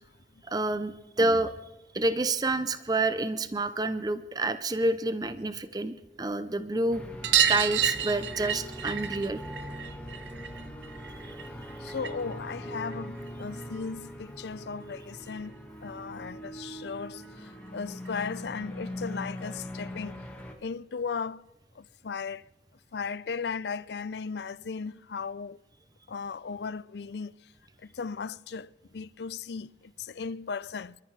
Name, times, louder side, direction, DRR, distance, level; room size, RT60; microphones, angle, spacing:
voice 1, 0.4-1.5 1.9-7.0 7.5-9.4, right 2 dB, 20° right, 0.6 m, -28 dB
sound 1, 6.9-20.5, equal, 10° left, 1.6 m, -41 dB
sound 2, 7.2-12.3 12.6-13.8 15.1-15.2 15.4-15.5 15.9-16.0 17.2-17.3 17.6-17.7 18.0-18.1 19.4-19.5 20.3-20.4, right 9 dB, 85° right, 0.9 m, -30 dB
voice 2, 11.8-20.2 20.6-21.4 21.8-22.4 22.9-25.6 26.1-27.3 27.8-31.0, left 5 dB, 75° left, 0.5 m, -36 dB
27.0 x 13.5 x 3.3 m
head